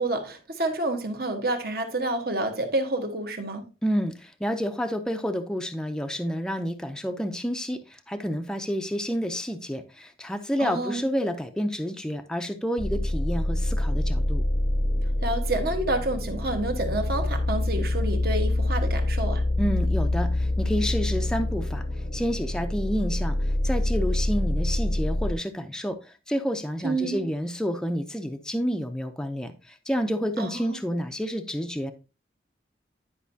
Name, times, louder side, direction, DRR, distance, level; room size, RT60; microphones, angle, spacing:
voice 1, 0.0-3.7 10.6-11.0 15.2-19.4 26.8-27.3 30.4-30.8, right 2 dB, 55° right, 1.2 m, -29 dB
voice 2, 3.8-7.8 8.1-14.4 19.6-21.8 22.1-23.3 23.6-26.0 26.3-29.5 29.9-31.9, equal, 5° left, 0.5 m, -29 dB
sound 1, 12.8-25.3, left 1 dB, 45° left, 0.7 m, -26 dB
10.5 x 5.3 x 2.7 m
head